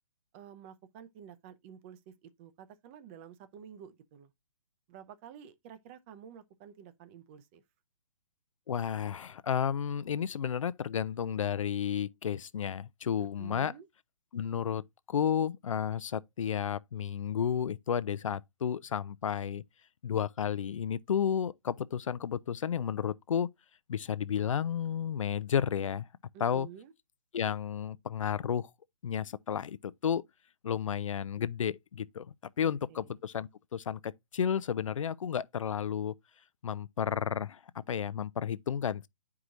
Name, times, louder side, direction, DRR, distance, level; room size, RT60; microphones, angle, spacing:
voice 1, 0.3-4.3 4.9-7.6 13.2-13.9 26.3-26.9 32.6-33.1, right 9 dB, 25° right, 0.6 m, -51 dB
voice 2, 8.7-13.7 14.3-14.8 15.1-19.6 20.0-23.5 23.9-26.1 26.4-26.7 27.3-28.7 29.0-30.2 30.6-36.1 36.6-39.1, left 8 dB, 80° left, 0.5 m, -32 dB
9.8 x 4.8 x 2.5 m
hypercardioid pair, 150°, 17 cm